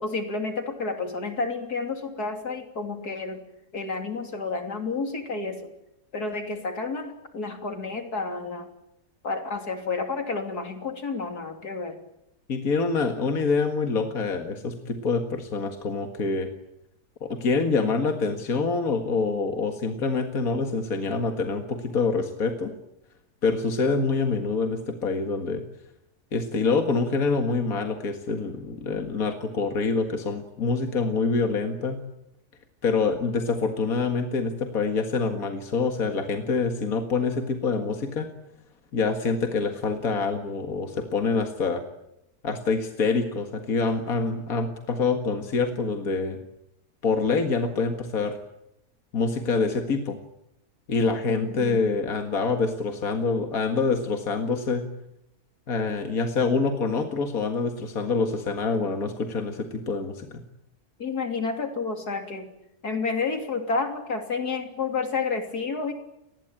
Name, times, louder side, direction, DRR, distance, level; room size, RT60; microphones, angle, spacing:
voice 1, 0.0-3.4 3.7-5.6 6.1-8.7 9.2-11.9 51.3-51.8 61.0-62.5 62.8-65.9, left 4 dB, 80° left, 5 dB, 3.7 m, -30 dB
voice 2, 12.5-16.5 17.2-22.7 23.4-25.6 26.3-32.0 32.8-38.3 38.9-41.8 42.4-46.4 47.0-48.4 49.1-50.2 50.9-54.8 55.7-60.4, left 4 dB, 65° left, 5 dB, 2.3 m, -26 dB
29.5 x 20.5 x 9.0 m, 0.85 s
omnidirectional pair, 1.6 m